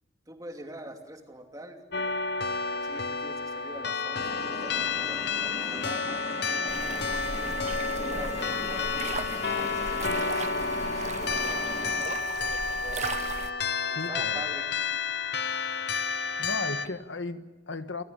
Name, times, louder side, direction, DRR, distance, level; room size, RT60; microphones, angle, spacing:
voice 1, 0.3-2.1 2.8-6.2 7.1-9.2 9.6-13.1 13.9-15.0, right 1 dB, 20° right, 4 dB, 2.7 m, -45 dB
sound 1, 1.9-16.9, left 5 dB, 60° left, 0.9 m, -31 dB
sound 2, 4.1-12.0, left 2 dB, 35° left, 2.0 m, -38 dB
sound 3, 6.7-13.5, right 4 dB, 40° right, 0.8 m, -37 dB
voice 2, 13.9-14.4 16.4-18.0, left 3 dB, 80° left, 10 dB, 1.4 m, -35 dB
29.5 x 14.5 x 9.9 m, 1.1 s
head